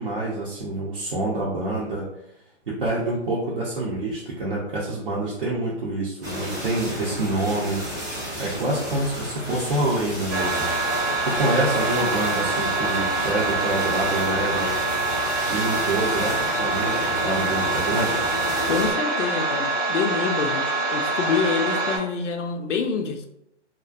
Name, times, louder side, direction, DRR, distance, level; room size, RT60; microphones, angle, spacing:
voice 1, 0.0-2.1 2.7-10.7 11.2-14.7 15.5-18.1, right 2 dB, 50° right, -6 dB, 0.6 m, -27 dB
sound 1, 6.2-18.9, equal, 15° right, 0.4 m, -32 dB
sound 2, 10.3-22.0, right 2 dB, 90° right, 1.1 m, -25 dB
voice 2, 18.7-23.3, left 6 dB, 85° left, 5 dB, 0.5 m, -26 dB
2.4 x 2.1 x 2.4 m, 0.80 s
hypercardioid pair, 150°, 36 cm